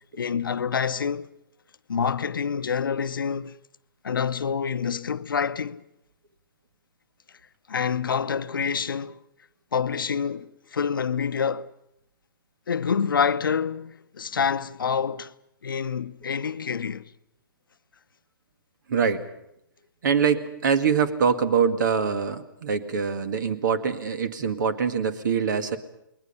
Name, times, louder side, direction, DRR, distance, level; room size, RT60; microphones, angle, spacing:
voice 1, 0.2-1.3 1.9-3.6 4.0-5.8 7.7-9.2 9.7-11.7 12.7-15.3 15.6-17.1, left 6 dB, 75° left, 0.8 m, -27 dB
voice 2, 18.9-19.2 20.0-25.8, right 6 dB, 60° right, 1.9 m, -24 dB
29.0 x 21.0 x 5.6 m
hypercardioid pair, 125°, 11 cm